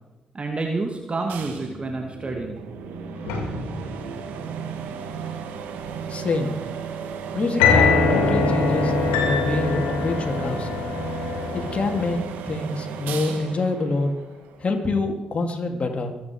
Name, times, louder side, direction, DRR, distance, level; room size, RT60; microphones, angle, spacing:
voice 1, 0.3-2.6, right 3 dB, 40° right, 2 dB, 2.3 m, -28 dB
sound 1, 1.3-14.8, right 6 dB, 80° right, 1.8 m, -34 dB
sound 2, 3.3-4.3 7.6-12.2, left 4 dB, 85° left, 2.6 m, -22 dB
voice 2, 6.1-6.6 7.3-8.9 9.2-10.7 11.5-14.1 14.6-16.1, left 3 dB, 45° left, 3 dB, 3.3 m, -26 dB
24.0 x 9.6 x 4.9 m, 1.1 s
hypercardioid pair, 40°, 3 cm